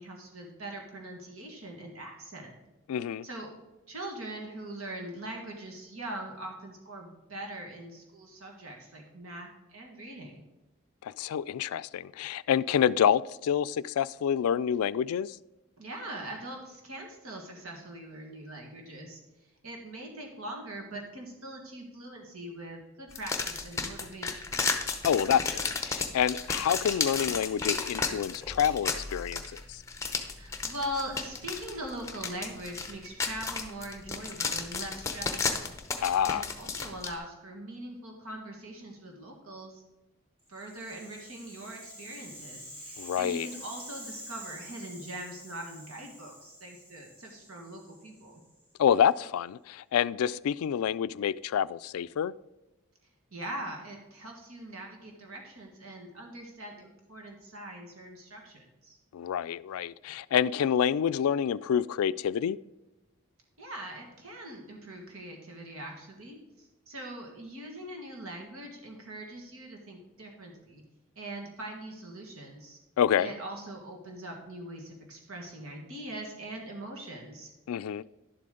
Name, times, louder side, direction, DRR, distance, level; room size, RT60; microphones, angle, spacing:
voice 1, 0.0-2.5 3.2-3.5 3.9-10.4 15.8-19.2 19.6-24.5 30.4-35.7 36.2-39.8 40.5-48.4 53.3-59.0 63.6-70.8 71.2-72.8 73.2-77.5, right 1 dB, 80° right, 1.7 m, -42 dB
voice 2, 2.9-3.3 11.0-15.4 25.0-29.8 36.0-36.4 43.0-43.5 48.8-52.3 59.1-62.6 73.0-73.3 77.7-78.0, left 8 dB, 85° left, 0.3 m, -27 dB
sound 1, 23.1-37.1, left 4 dB, 15° left, 0.7 m, -33 dB
Rattle (instrument), 40.5-48.7, equal, 25° right, 2.8 m, -48 dB
11.0 x 7.6 x 3.8 m
head